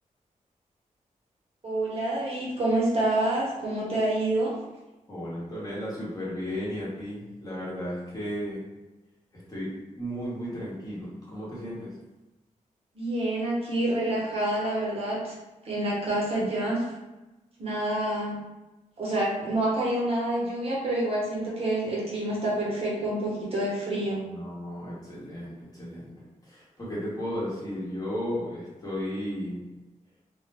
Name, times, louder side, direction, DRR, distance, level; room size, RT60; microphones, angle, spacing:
voice 1, 1.6-4.5 12.9-15.3 15.6-16.8 17.6-18.4 19.0-24.2, right 1 dB, 45° right, -6 dB, 0.7 m, -27 dB
voice 2, 5.1-8.6 9.5-9.7 10.0-11.9 24.2-29.6, equal, 25° left, -8 dB, 0.9 m, -34 dB
2.1 x 2.1 x 3.3 m, 1.1 s
wide cardioid pair, 145°, 14 cm